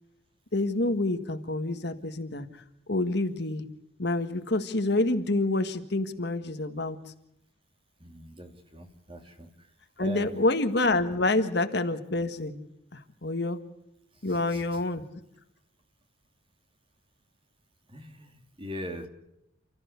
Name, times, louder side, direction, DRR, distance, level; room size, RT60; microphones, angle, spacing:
voice 1, 0.5-2.5 2.9-3.7 4.0-7.0 10.0-12.6 13.2-13.6 14.2-15.0, left 2 dB, 60° left, 8 dB, 1.8 m, -27 dB
voice 2, 8.0-9.5 10.0-10.4 14.3-14.6 17.9-19.1, equal, 30° right, 5 dB, 3.0 m, -41 dB
29.5 x 14.5 x 8.3 m, 0.81 s
head